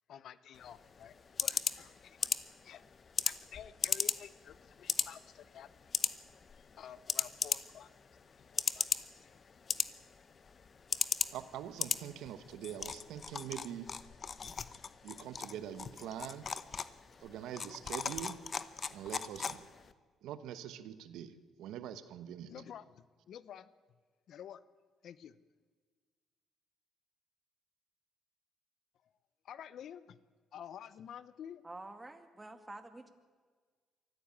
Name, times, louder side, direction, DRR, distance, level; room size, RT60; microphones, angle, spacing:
voice 1, 0.1-2.3 2.6-2.9 3.2-5.7 6.0-6.2 6.6-7.9 8.5-9.4 22.5-23.7 24.3-24.6 25.0-25.4 29.4-30.2 30.5-31.6, left 9 dB, 70° left, 16 dB, 0.8 m, -51 dB
sound 1, 0.5-19.9, left 5 dB, 45° left, 0.9 m, -38 dB
voice 2, 11.3-13.9 15.0-16.5 17.2-18.4 18.9-19.7 20.2-22.6, right 10 dB, 90° right, 12 dB, 1.1 m, -44 dB
voice 3, 31.6-33.1, right 2 dB, 15° right, 8 dB, 2.2 m, -48 dB
23.5 x 14.5 x 8.8 m, 1.5 s
cardioid pair, 90°, 0 cm